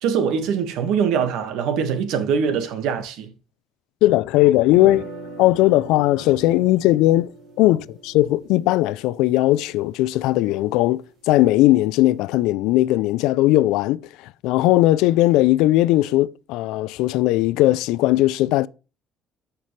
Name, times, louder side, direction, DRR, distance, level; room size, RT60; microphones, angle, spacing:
voice 1, 0.0-3.3, right 7 dB, 75° right, 1.6 m, -23 dB
voice 2, 4.0-5.1 5.4-7.3 7.6-18.7, left 16 dB, 85° left, 0.4 m, -18 dB
sound 1, 4.7-10.7, right 3 dB, 60° right, 3.2 m, -41 dB
14.0 x 5.9 x 3.2 m
cardioid pair, 145°, 0 cm